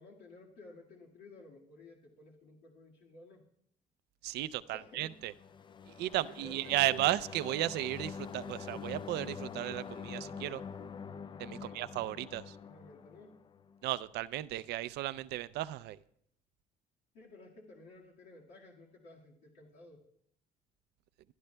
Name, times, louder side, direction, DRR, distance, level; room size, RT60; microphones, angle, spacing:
voice 1, 0.0-3.4 4.7-5.2 6.1-6.9 11.5-12.2 12.6-13.4 17.1-20.0, left 3 dB, 85° left, -3 dB, 1.8 m, -55 dB
voice 2, 4.2-5.3 5.9-10.6 11.4-12.6 13.8-16.0, right 15 dB, 75° right, 16 dB, 0.4 m, -34 dB
sound 1, 5.1-13.8, left 6 dB, 30° left, 0.4 m, -45 dB
26.5 x 10.5 x 2.2 m, 0.70 s
cardioid pair, 110°, 17 cm